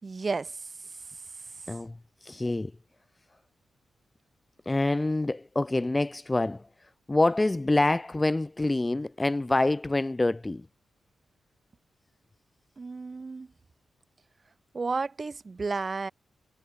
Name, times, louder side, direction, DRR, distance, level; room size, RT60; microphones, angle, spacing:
voice 1, 0.0-0.5 12.8-13.5 14.7-16.1, right 4 dB, 40° right, 5.7 m, -32 dB
voice 2, 2.2-2.7 4.6-6.7 7.1-10.7, left 2 dB, 20° left, 1.3 m, -26 dB
cardioid pair, 75°, 0 cm